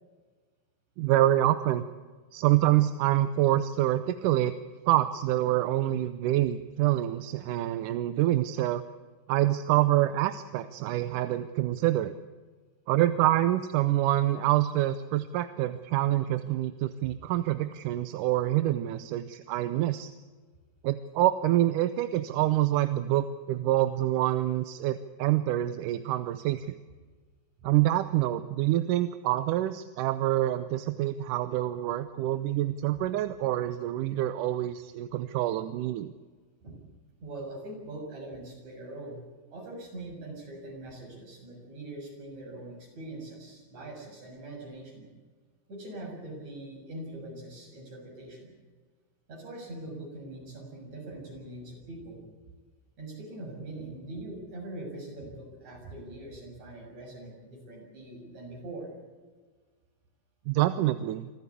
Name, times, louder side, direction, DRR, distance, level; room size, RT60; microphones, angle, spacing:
voice 1, 1.0-1.8 2.3-4.6 4.9-8.8 9.3-12.1 12.9-20.1 20.8-26.8 27.6-36.1 60.5-61.3, right 14 dB, 75° right, 12 dB, 2.2 m, -26 dB
voice 2, 37.2-39.2 39.5-45.1 45.7-48.5 49.3-52.2 53.0-58.9, right 2 dB, 55° right, 0 dB, 8.0 m, -42 dB
26.0 x 15.0 x 8.4 m, 1.4 s
omnidirectional pair, 3.9 m